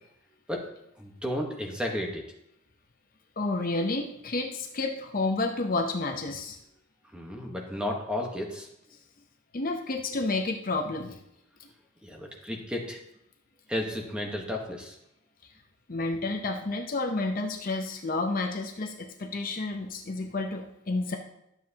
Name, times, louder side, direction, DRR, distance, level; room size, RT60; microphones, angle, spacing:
voice 1, 1.0-2.2 7.1-8.7 12.0-13.0 13.7-15.0, left 1 dB, 5° right, 0 dB, 1.2 m, -33 dB
voice 2, 3.4-6.6 9.5-11.2 15.9-21.2, left 2 dB, 40° left, 3 dB, 0.7 m, -30 dB
12.0 x 7.5 x 2.9 m, 0.81 s
head